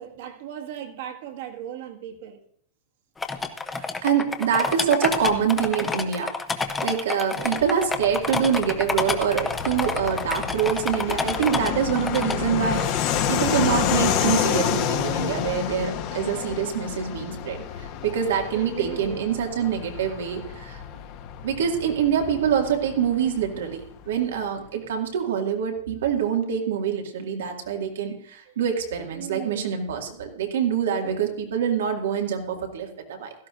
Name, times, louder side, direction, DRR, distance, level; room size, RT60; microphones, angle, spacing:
voice 1, 0.0-2.4 7.3-7.7 18.5-19.2 28.5-28.6 29.1-29.8 31.0-31.2, right 10 dB, 60° right, 3 dB, 1.7 m, -37 dB
sound 1, 3.2-12.4 12.8-12.9, left 4 dB, 10° left, 0.7 m, -28 dB
voice 2, 3.7-6.3 6.8-20.8 21.4-33.3, right 8 dB, 85° right, 2 dB, 2.1 m, -25 dB
Fixed-wing aircraft airplane, 7.9-24.1, left 9 dB, 45° left, 1.1 m, -29 dB
16.5 x 13.0 x 2.6 m, 0.66 s
supercardioid pair, 150°, 0 cm